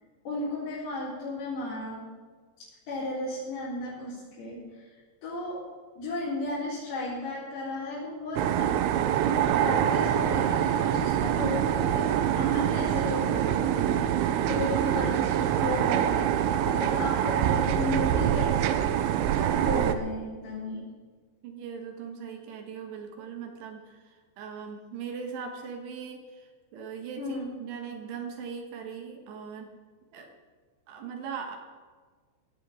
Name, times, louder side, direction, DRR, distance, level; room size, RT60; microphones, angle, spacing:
voice 1, 0.2-2.0 2.6-5.6 6.0-8.7 9.2-18.5 19.4-20.9 27.2-27.5, left 2 dB, 60° left, -11 dB, 6.1 m, -34 dB
sound 1, 8.4-19.9, right 10 dB, 85° right, 3.1 m, -25 dB
voice 2, 21.4-29.7 30.1-30.3 30.9-31.6, right 6 dB, 70° right, 3 dB, 3.2 m, -40 dB
19.5 x 14.5 x 3.7 m, 1.5 s
omnidirectional pair, 5.6 m